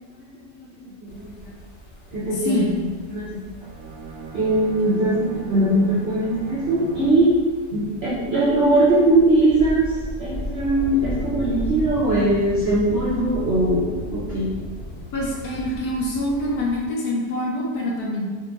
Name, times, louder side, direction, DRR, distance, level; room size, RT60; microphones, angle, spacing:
voice 1, 0.0-1.5 2.1-2.7 3.1-3.3 4.3-7.3 7.7-13.8 14.1-14.5, right 1 dB, 55° right, -8 dB, 0.7 m, -21 dB
sound 1, 1.1-16.9, equal, 55° left, 0.6 m, -36 dB
voice 2, 2.3-2.8 15.1-18.3, left 1 dB, 70° left, -4 dB, 1.2 m, -25 dB
Bowed string instrument, 3.5-7.4, right 2 dB, 85° right, 1.3 m, -38 dB
3.7 x 2.6 x 2.9 m, 1.4 s
omnidirectional pair, 1.8 m